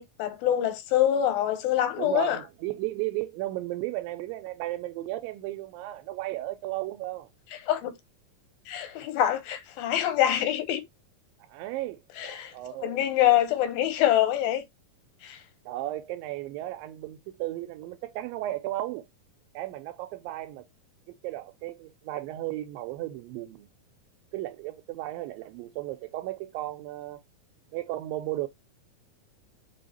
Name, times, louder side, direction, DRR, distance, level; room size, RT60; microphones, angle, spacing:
voice 1, 0.0-2.4 7.7-7.9 8.7-10.8 12.2-12.5 12.8-14.6 15.2-15.4, left 11 dB, 90° left, 2.7 m, -25 dB
voice 2, 2.0-7.3 11.4-13.0 15.7-19.1 19.5-20.7 21.1-23.7 24.3-27.2 27.7-28.5, right 16 dB, 85° right, 2.3 m, -35 dB
6.3 x 2.7 x 2.9 m
omnidirectional pair, 4.0 m